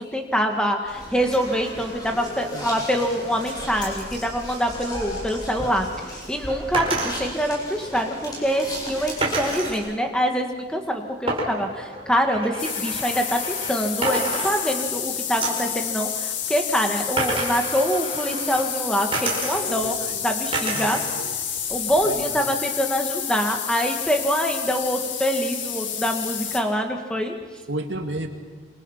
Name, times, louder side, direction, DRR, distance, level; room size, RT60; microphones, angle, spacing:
voice 1, 0.0-19.9 20.2-21.0 21.7-27.3, equal, 5° left, 3 dB, 2.1 m, -25 dB
sound 1, 0.8-9.7, equal, 20° left, 7.6 m, -36 dB
voice 2, 2.5-2.8 19.6-21.4 22.0-22.4 27.7-28.3, right 1 dB, 80° right, 4 dB, 2.5 m, -34 dB
sound 2, 6.7-7.2 9.2-9.8 11.3-13.8 14.0-15.0 15.4-15.7 17.2-18.7 19.1-19.9 20.5-21.1 21.4-22.2, right 2 dB, 30° right, 5.0 m, -29 dB
sound 3, 12.6-26.6, left 8 dB, 85° left, 2.3 m, -30 dB
28.0 x 26.0 x 5.8 m, 1.4 s
head